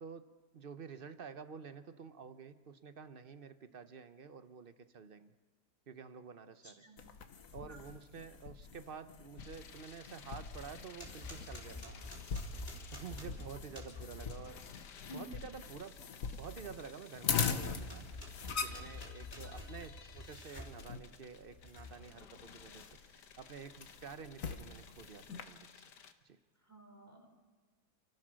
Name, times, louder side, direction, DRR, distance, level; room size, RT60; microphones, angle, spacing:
voice 1, 0.5-5.3 5.9-6.9 7.5-12.1 12.9-14.6 15.0-16.0 16.4-18.1 18.4-25.8 26.2-26.4, right 6 dB, 45° right, 11 dB, 0.8 m, -50 dB
voice 2, 6.6-7.0 7.7-7.8 15.1-15.3 19.4-19.5 26.7-27.3, left 1 dB, 10° left, 1 dB, 3.4 m, -52 dB
sound 1, 7.0-25.4, left 6 dB, 55° left, 1.5 m, -43 dB
sound 2, 9.4-26.1, left 7 dB, 85° left, 1.7 m, -57 dB
sound 3, 10.5-14.4 17.5-20.8 21.5-22.1, left 2 dB, 25° left, 3.9 m, -48 dB
29.0 x 14.0 x 6.3 m, 1.4 s
omnidirectional pair, 1.8 m